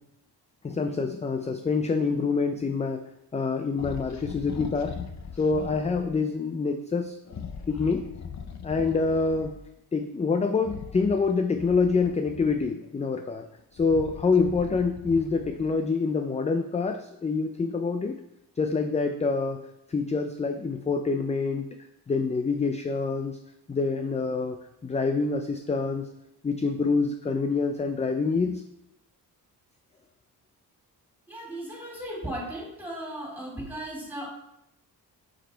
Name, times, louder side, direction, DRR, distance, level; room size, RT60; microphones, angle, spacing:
voice 1, 0.6-3.0 3.3-5.0 5.4-7.2 7.7-8.1 8.6-9.5 9.9-13.5 13.7-18.2 18.6-19.6 19.9-21.7 22.1-23.4 23.7-26.1 26.4-28.6, left 4 dB, 20° left, 6 dB, 0.4 m, -26 dB
sound 1, 3.8-6.1 7.2-9.6 10.6-12.9 13.5-15.8, left 6 dB, 45° left, 0.7 m, -40 dB
voice 2, 31.3-34.3, right 1 dB, 5° right, -3 dB, 3.1 m, -36 dB
7.2 x 5.2 x 4.4 m, 0.84 s
cardioid pair, 105°, 40 cm